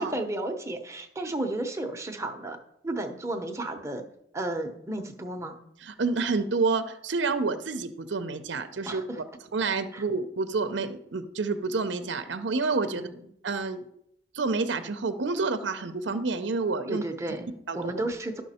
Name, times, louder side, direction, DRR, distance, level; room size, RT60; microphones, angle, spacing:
voice 1, 0.0-2.6 2.8-4.0 4.3-5.6 8.8-9.2 9.9-10.0 12.9-13.1 16.9-18.4, right 1 dB, 15° right, 5 dB, 0.7 m, -33 dB
voice 2, 5.8-9.0 9.5-13.1 13.4-13.8 14.3-17.0 17.7-17.8, right 4 dB, 70° right, 10 dB, 0.7 m, -28 dB
12.0 x 5.9 x 4.3 m, 0.75 s
head